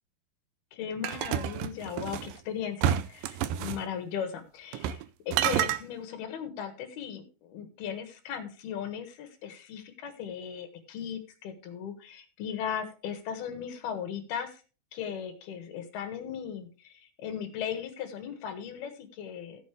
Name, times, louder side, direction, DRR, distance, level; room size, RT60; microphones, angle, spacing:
voice 1, 0.7-14.6 14.9-19.6, left 8 dB, 70° left, 6 dB, 3.3 m, -37 dB
sound 1, 1.0-2.3 2.8-3.8 4.7-5.0 5.3-5.8, right 11 dB, 85° right, 2.0 m, -29 dB
15.5 x 7.6 x 3.3 m, 0.34 s
omnidirectional pair, 4.7 m